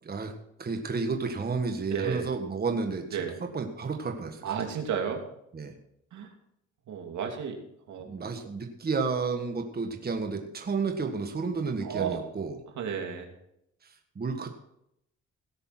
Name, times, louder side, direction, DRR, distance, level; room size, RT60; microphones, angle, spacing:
voice 1, 0.0-0.3 0.6-4.7 5.5-5.8 8.0-12.6 13.8-14.5, right 4 dB, 30° right, 5 dB, 1.6 m, -32 dB
voice 2, 1.9-2.3 3.1-3.3 4.4-5.2 6.1-6.3 6.9-7.6 7.9-8.1 11.8-12.2 12.8-13.3, right 7 dB, 70° right, 3 dB, 2.7 m, -32 dB
17.5 x 6.8 x 6.0 m, 0.78 s
cardioid pair, 90°, 30 cm